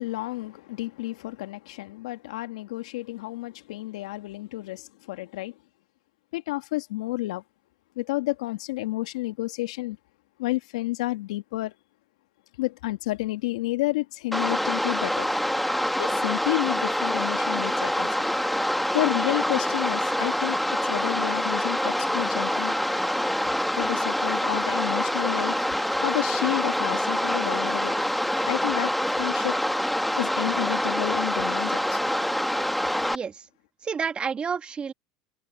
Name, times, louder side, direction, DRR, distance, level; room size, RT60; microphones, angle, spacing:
voice 1, 0.0-5.5 6.3-7.4 8.0-10.0 10.4-11.7 12.6-15.3 16.0-18.1 18.9-20.6 20.8-22.7 23.8-25.6 26.0-27.9 28.5-29.5 30.2-32.0, left 19 dB, 75° left, 1.8 m, -30 dB
sound 1, 14.3-33.2, equal, ahead, 1.8 m, -26 dB
voice 2, 33.1-33.5 33.8-34.9, right 6 dB, 30° right, 1.4 m, -30 dB
hypercardioid pair, 85°, 3 cm